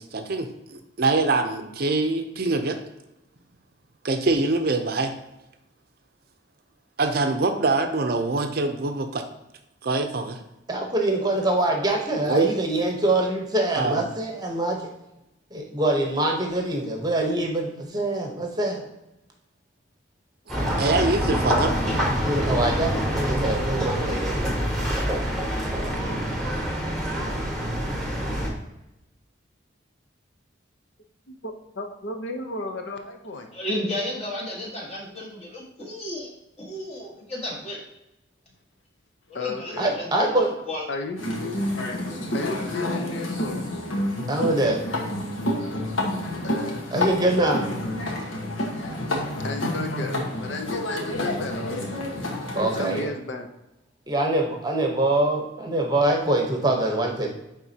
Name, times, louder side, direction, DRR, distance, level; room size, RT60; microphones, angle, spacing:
voice 1, 0.0-2.8 4.0-5.1 7.0-9.2 9.8-10.4 12.3-12.5 13.8-14.0 20.8-21.8, right 3 dB, 50° right, 7 dB, 0.5 m, -24 dB
voice 2, 10.7-14.9 15.5-18.8 22.2-24.5 39.8-40.5 44.3-44.8 46.9-47.6 52.5-53.1 54.1-57.3, right 1 dB, 20° right, 1 dB, 0.9 m, -24 dB
sound 1, 20.5-28.5, equal, ahead, 1.2 m, -26 dB
voice 3, 31.3-33.5 39.3-39.9 40.9-41.6 42.3-43.7 46.4-46.8 49.4-51.9 52.8-53.5, left 2 dB, 65° left, 4 dB, 0.7 m, -33 dB
voice 4, 33.5-36.3 36.6-37.8 39.3-40.1 40.7-40.8, left 1 dB, 30° left, -2 dB, 1.5 m, -32 dB
sound 2, 41.2-53.0, left 1 dB, 90° left, 1.3 m, -29 dB
9.3 x 3.6 x 2.8 m, 0.92 s
head